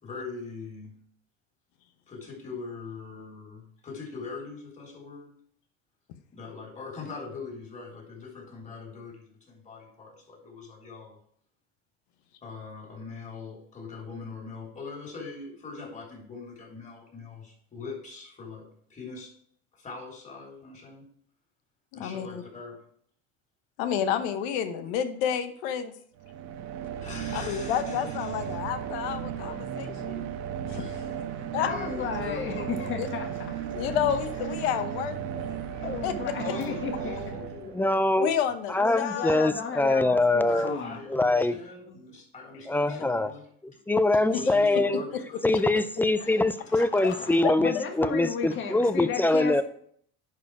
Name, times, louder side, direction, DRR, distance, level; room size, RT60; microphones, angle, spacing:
voice 1, 0.0-0.9 2.1-5.4 6.3-11.2 12.4-19.3 19.7-21.1 21.9-22.9 27.0-28.6 30.7-32.9 33.7-34.0 36.4-38.1 40.5-43.5 44.3-45.4 46.1-46.5 49.3-49.4, left 4 dB, 25° left, -1 dB, 3.6 m, -42 dB
voice 2, 21.9-22.4 23.8-25.9 27.3-30.2 30.7-30.8 31.5-31.7 33.0-33.1 33.7-36.1 38.2-39.5 42.8-43.1 44.3-44.4 47.4-47.5, left 9 dB, 80° left, 9 dB, 1.0 m, -30 dB
sound 1, 26.2-38.1, right 8 dB, 80° right, 1.2 m, -35 dB
voice 3, 31.6-34.0 35.8-37.2 38.7-41.0 41.9-42.0 46.2-49.6, left 6 dB, 40° left, 3 dB, 1.8 m, -34 dB
voice 4, 37.7-38.3 38.7-40.8 41.1-41.6 42.7-43.3 43.9-45.0 45.4-49.6, left 2 dB, 5° left, 13 dB, 0.4 m, -23 dB
10.5 x 4.8 x 4.8 m, 0.62 s
supercardioid pair, 115°, 32 cm